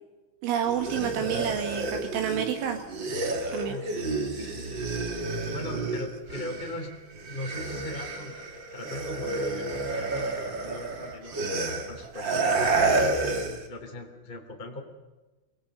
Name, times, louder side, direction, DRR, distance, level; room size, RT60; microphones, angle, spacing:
voice 1, 0.4-2.8 3.5-3.8, right 9 dB, 75° right, 4 dB, 3.9 m, -29 dB
sound 1, 0.6-6.9 7.1-13.7, right 3 dB, 50° right, 1.3 m, -30 dB
voice 2, 3.6-4.9 5.5-7.0 7.3-8.4 8.7-13.2 13.7-14.8, left 1 dB, 15° left, 2 dB, 2.6 m, -40 dB
27.0 x 20.5 x 6.7 m, 1.2 s
omnidirectional pair, 5.7 m